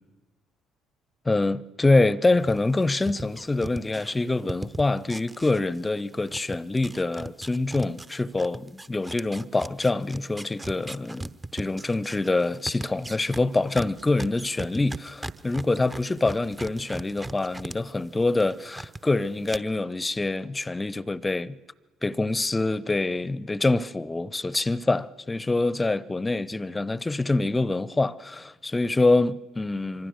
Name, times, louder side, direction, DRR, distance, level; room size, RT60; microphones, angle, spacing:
voice 1, 1.2-21.6 22.0-30.1, left 2 dB, 15° left, 0.7 m, -25 dB
sound 1, 2.4-6.0 6.3-17.8 18.1-19.0 19.4-19.6, right 2 dB, 15° right, 0.8 m, -38 dB
25.5 x 25.0 x 6.6 m
figure-of-eight pair, 50°, 0 cm